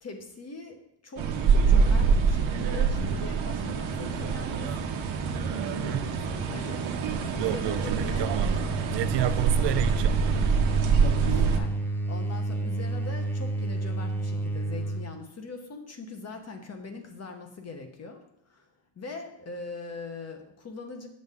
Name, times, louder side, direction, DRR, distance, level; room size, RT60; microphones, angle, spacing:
voice 1, 0.0-5.0 5.6-8.3 11.2-18.7 19.0-21.1, left 3 dB, 35° left, 5 dB, 1.1 m, -42 dB
sound 1, 1.2-11.6, right 5 dB, 80° right, 1.1 m, -25 dB
voice 2, 5.5-6.1 7.4-8.6 8.9-10.4, right 12 dB, 60° right, 12 dB, 0.6 m, -31 dB
sound 2, 7.4-15.1, right 2 dB, 5° left, 0.7 m, -31 dB
7.9 x 6.4 x 3.6 m, 0.77 s
cardioid pair, 130°, 47 cm